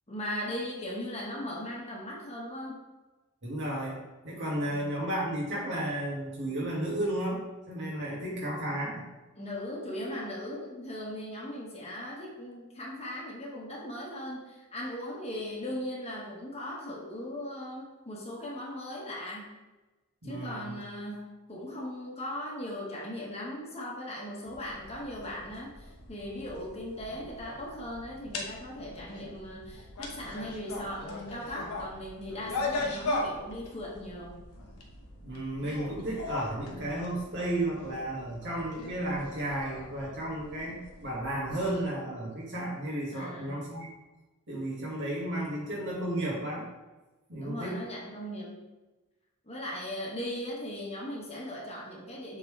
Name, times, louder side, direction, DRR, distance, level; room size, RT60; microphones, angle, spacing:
voice 1, 0.1-2.8 4.6-4.9 9.3-19.5 20.2-34.4 43.1-43.6 47.4-48.7 49.4-52.4, left 1 dB, 30° left, -3 dB, 1.3 m, -38 dB
voice 2, 3.4-9.0 20.2-20.7 32.8-32.9 35.2-43.9 44.5-46.7 47.3-47.8, right 1 dB, 55° right, -4 dB, 2.1 m, -33 dB
sound 1, 24.5-41.8, left 2 dB, 85° left, 1.1 m, -40 dB
7.3 x 3.9 x 3.3 m, 1.1 s
head